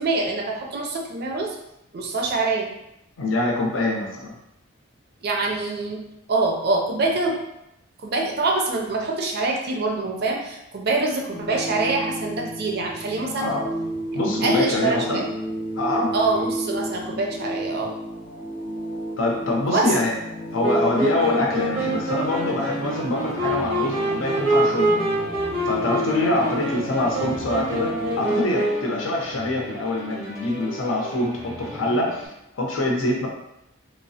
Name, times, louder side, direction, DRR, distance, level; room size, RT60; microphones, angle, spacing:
voice 1, 0.0-1.6 1.9-2.7 5.2-6.0 6.3-7.4 8.0-13.5 14.4-15.3 16.1-17.9 19.7-19.9, right 3 dB, 50° right, 0 dB, 0.4 m, -25 dB
voice 2, 3.2-4.3 13.4-13.7 14.1-15.3 15.8-16.1 19.2-20.1 20.5-25.0 25.7-32.2 32.5-33.3, left 2 dB, 75° left, -1 dB, 0.6 m, -25 dB
sound 1, 11.3-28.4, right 1 dB, 40° left, 0.3 m, -33 dB
Wind instrument woodwind instrument, 20.6-29.0, right 1 dB, 90° right, 0.7 m, -25 dB
sound 2, 21.0-32.3, left 1 dB, 15° left, 0.7 m, -38 dB
3.0 x 2.0 x 2.7 m, 0.84 s
head